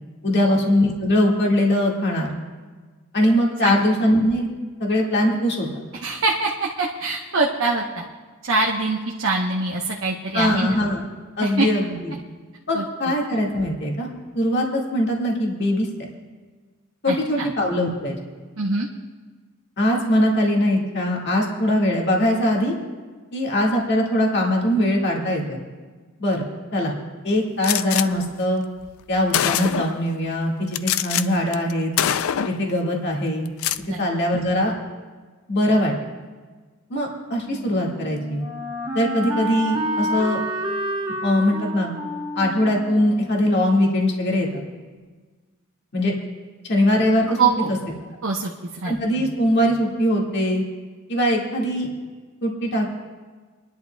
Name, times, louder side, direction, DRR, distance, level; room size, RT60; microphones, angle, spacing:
voice 1, 0.2-2.3 3.1-4.5 4.8-5.7 10.3-11.0 11.4-12.1 12.7-14.1 14.4-15.9 17.0-18.2 19.8-22.7 23.3-25.6 26.2-26.9 27.2-28.6 29.1-31.9 32.4-33.5 34.0-34.7 35.5-35.9 36.9-38.4 38.9-40.4 41.2-41.9 42.4-44.6 45.9-46.1 46.6-47.5 48.8-50.6 51.1-51.9 52.4-52.9, left 1 dB, 55° left, -1 dB, 1.9 m, -21 dB
voice 2, 6.0-8.0 8.4-10.8 11.4-11.7 12.7-12.8 17.1-17.5 18.6-18.9 33.9-34.0 47.4-47.7 48.2-49.3, right 3 dB, 70° right, -2 dB, 0.9 m, -24 dB
Gunshot gunfire, 27.6-28.1 28.9-29.0 29.3-30.0 30.7-31.2 31.5-31.7 32.0-32.6 33.5-33.8, left 10 dB, 75° left, 0.4 m, -23 dB
Wind instrument woodwind instrument, 37.5-44.4, right 1 dB, 20° right, 1.3 m, -30 dB
29.0 x 11.0 x 2.3 m, 1.4 s
head